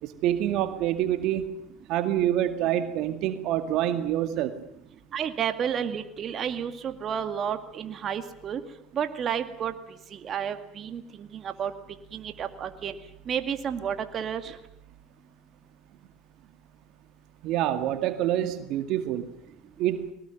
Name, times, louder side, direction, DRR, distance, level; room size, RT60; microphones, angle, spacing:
voice 1, 0.0-1.5 1.9-4.6 17.4-19.3 19.8-20.1, right 12 dB, 60° right, 8 dB, 2.1 m, -26 dB
voice 2, 5.1-8.6 8.9-9.7 10.1-11.7 12.1-12.9 13.3-14.6, right 8 dB, 40° right, 8 dB, 2.1 m, -31 dB
22.0 x 19.0 x 9.2 m, 0.79 s
hypercardioid pair, 85°, 0 cm